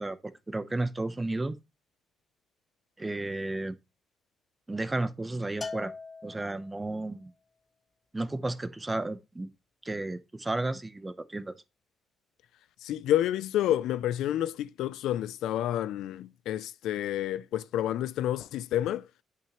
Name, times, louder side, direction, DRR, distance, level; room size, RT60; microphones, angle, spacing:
voice 1, 0.0-1.6 3.0-3.8 4.7-5.9 6.2-7.3 8.1-9.5 9.8-11.5, right 2 dB, 15° right, 0.8 m, -33 dB
Bell, 5.6-7.0, left 4 dB, 25° left, 0.7 m, -40 dB
voice 2, 12.8-19.1, left 12 dB, 85° left, 0.4 m, -29 dB
8.6 x 5.9 x 3.1 m
cardioid pair, 90°, 0 cm